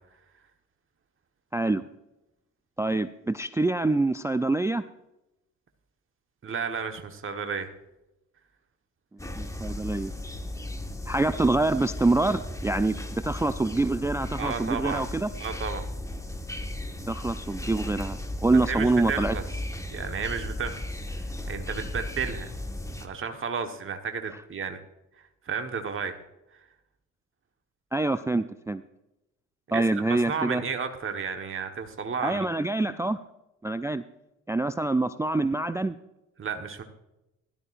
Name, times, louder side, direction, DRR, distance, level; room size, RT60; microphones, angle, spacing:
voice 1, 1.5-1.8 2.8-4.9 9.4-10.1 11.1-13.0 13.2-15.3 17.1-19.4 27.9-28.8 29.7-30.6 32.2-33.2 33.6-34.0 34.5-36.0, right 2 dB, 10° right, 13 dB, 0.4 m, -25 dB
voice 2, 6.4-7.7 14.4-15.0 15.4-15.9 18.7-19.4 19.9-20.9 21.2-22.5 23.0-24.8 25.4-26.1 29.7-29.8 30.1-32.5 36.4-36.8, right 6 dB, 35° right, 6 dB, 1.4 m, -32 dB
sound 1, 9.2-23.1, left 1 dB, 10° left, 1.5 m, -35 dB
16.0 x 12.5 x 2.6 m, 0.92 s
hypercardioid pair, 50°, 37 cm